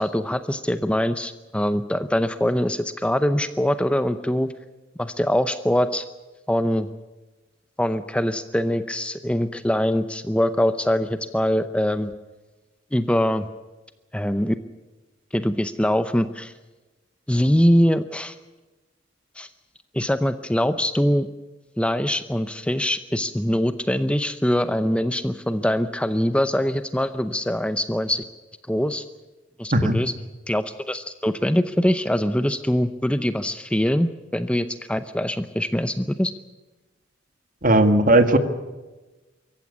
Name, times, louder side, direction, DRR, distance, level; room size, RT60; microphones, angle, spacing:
voice 1, 0.0-4.5 5.0-6.0 6.5-6.9 7.8-12.1 12.9-13.5 14.1-14.5 15.3-16.5 17.3-18.4 19.4-19.5 19.9-21.3 21.8-28.2 28.7-29.0 29.6-30.1 30.5-36.3, equal, 5° left, 10 dB, 0.6 m, -23 dB
voice 2, 37.6-38.4, right 1 dB, 45° right, 8 dB, 1.8 m, -16 dB
24.5 x 15.0 x 9.5 m, 1.2 s
head